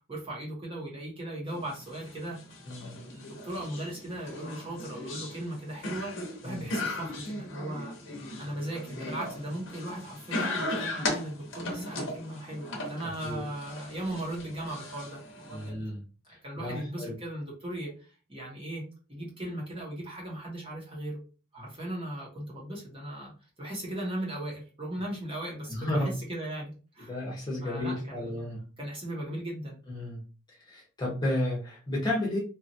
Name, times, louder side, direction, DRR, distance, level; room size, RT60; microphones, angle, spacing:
voice 1, 0.1-2.4 2.8-6.1 6.4-8.0 8.4-15.7 16.4-17.9 18.3-18.8 19.1-21.2 21.5-23.3 23.6-27.1 27.6-28.4 28.8-29.8, right 1 dB, 25° right, -3 dB, 0.9 m, -37 dB
sound 1, 1.5-15.7, left 2 dB, 55° left, 0.8 m, -38 dB
voice 2, 15.5-16.0 16.6-17.1 25.7-26.1 27.1-28.6 29.9-30.2 30.5-32.4, left 1 dB, 20° left, -4 dB, 0.8 m, -32 dB
2.9 x 2.4 x 2.6 m, 0.36 s
head